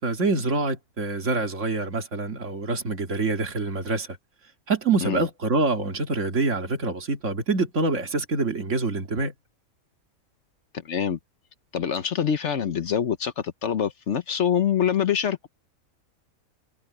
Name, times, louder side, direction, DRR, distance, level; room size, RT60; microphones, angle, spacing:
voice 1, 0.0-4.1 4.7-9.3, right 3 dB, 55° right, 2.5 m, -26 dB
voice 2, 10.8-11.2 11.7-15.5, left 8 dB, 55° left, 1.1 m, -25 dB
omnidirectional pair, 1.5 m